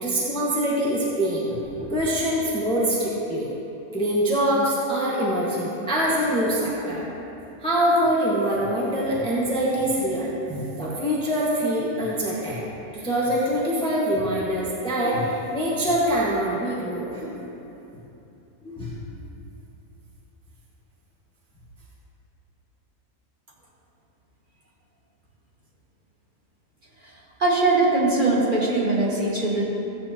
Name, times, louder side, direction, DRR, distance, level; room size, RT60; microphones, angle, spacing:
voice 1, 0.0-3.5 3.9-7.0 7.6-12.6 12.9-17.3 18.6-18.9, equal, 5° left, -7 dB, 1.5 m, -24 dB
voice 2, 27.4-29.6, right 2 dB, 30° right, -5 dB, 2.0 m, -21 dB
15.5 x 9.3 x 3.0 m, 2.9 s
omnidirectional pair, 1.7 m